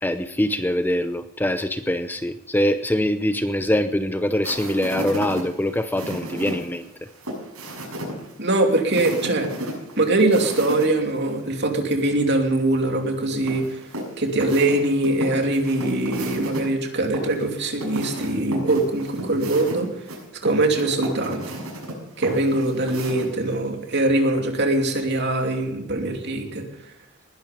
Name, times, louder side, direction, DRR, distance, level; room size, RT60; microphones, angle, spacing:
voice 1, 0.0-6.9, left 1 dB, 10° left, 10 dB, 0.6 m, -23 dB
sound 1, 4.4-10.9 11.2-11.3 13.5-16.6 17.1-23.6, right 1 dB, 90° right, 6.7 m, -33 dB
voice 2, 8.4-9.5 10.0-13.6 14.2-19.9 20.4-21.4 22.2-26.6, right 2 dB, 50° right, 4 dB, 2.8 m, -22 dB
20.0 x 11.5 x 5.3 m, 0.85 s
head